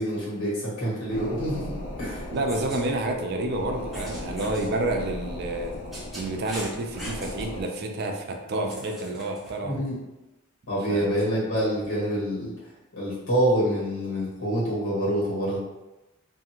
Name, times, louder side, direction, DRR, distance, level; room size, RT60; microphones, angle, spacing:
voice 1, 0.0-2.2 9.6-9.9 10.7-12.5 12.9-15.6, right 1 dB, 85° left, -7 dB, 1.4 m, -26 dB
sound 1, 1.1-7.6, left 1 dB, 65° left, 0.5 m, -37 dB
sound 2, 2.3-2.8 3.9-4.7 5.5-7.5 8.7-9.5, equal, ahead, 0.6 m, -41 dB
voice 2, 2.3-5.7 6.1-9.8 10.9-11.2, right 2 dB, 50° right, 3 dB, 0.4 m, -29 dB
2.6 x 2.4 x 2.8 m, 1.0 s
head